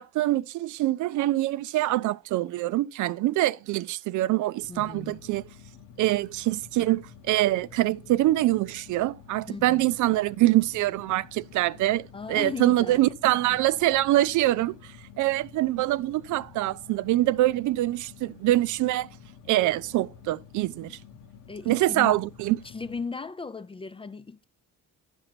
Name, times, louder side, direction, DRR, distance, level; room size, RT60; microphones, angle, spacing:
voice 1, 0.0-5.4 6.0-19.1 19.5-21.0 21.7-22.6, right 16 dB, 75° right, 0.4 m, -24 dB
sound 1, 4.6-23.0, left 7 dB, 80° left, 1.0 m, -50 dB
voice 2, 4.7-5.2 9.5-9.9 12.1-13.6 21.5-22.2 22.5-24.4, left 4 dB, 20° left, 0.3 m, -37 dB
11.0 x 5.2 x 4.3 m
cardioid pair, 90°, 30 cm